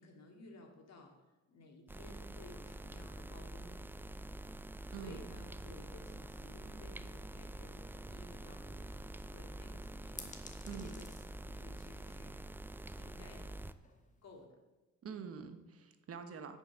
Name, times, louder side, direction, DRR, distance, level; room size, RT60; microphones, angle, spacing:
voice 1, 0.0-4.0 5.0-11.2 11.4-12.4 13.0-13.6 14.2-14.6 15.1-15.3, left 2 dB, 60° left, 2 dB, 2.4 m, -56 dB
sound 1, 1.9-13.7, right 1 dB, 5° right, 0.4 m, -47 dB
voice 2, 4.9-5.2 10.7-11.0 15.0-16.6, right 6 dB, 50° right, 9 dB, 1.1 m, -46 dB
sound 2, 9.2-14.5, left 3 dB, 25° left, 1.5 m, -57 dB
10.0 x 5.8 x 6.1 m, 1.1 s
cardioid pair, 90°, 30 cm